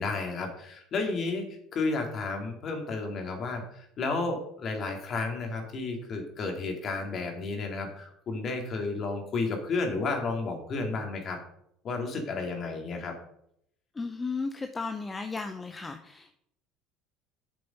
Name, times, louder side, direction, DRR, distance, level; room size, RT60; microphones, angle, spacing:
voice 1, 0.0-11.4 11.8-13.1, left 3 dB, 45° left, 3 dB, 2.7 m, -32 dB
voice 2, 14.0-16.4, left 4 dB, 20° left, 6 dB, 0.8 m, -35 dB
8.0 x 6.7 x 5.5 m, 0.74 s
hypercardioid pair, 65°, 0 cm